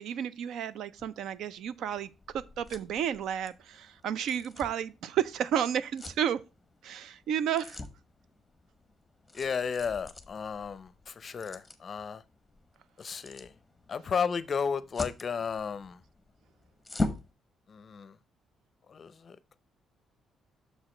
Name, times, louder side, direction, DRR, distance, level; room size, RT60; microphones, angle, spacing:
voice 1, 0.0-6.4 6.8-7.8, right 9 dB, 70° right, 0.4 m, -32 dB
sound 1, 1.0-17.3, left 2 dB, 10° left, 0.8 m, -43 dB
voice 2, 9.3-12.2 13.0-13.5 13.9-16.0 17.7-18.2 18.9-19.4, left 6 dB, 35° left, 0.5 m, -33 dB
6.6 x 4.9 x 4.3 m
cardioid pair, 150°, 0 cm